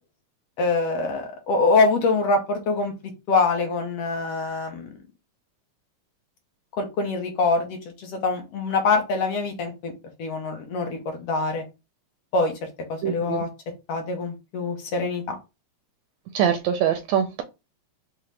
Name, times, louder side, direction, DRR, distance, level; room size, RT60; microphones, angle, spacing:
voice 1, 0.6-2.9 3.3-4.9 6.8-9.9 10.2-11.6 12.3-12.5 12.9-13.5 13.9-15.3, left 3 dB, 75° left, 4 dB, 1.4 m, -24 dB
voice 2, 13.0-13.4 16.3-17.4, right 9 dB, 80° right, 7 dB, 1.6 m, -23 dB
5.6 x 2.0 x 3.2 m, 0.26 s
omnidirectional pair, 3.4 m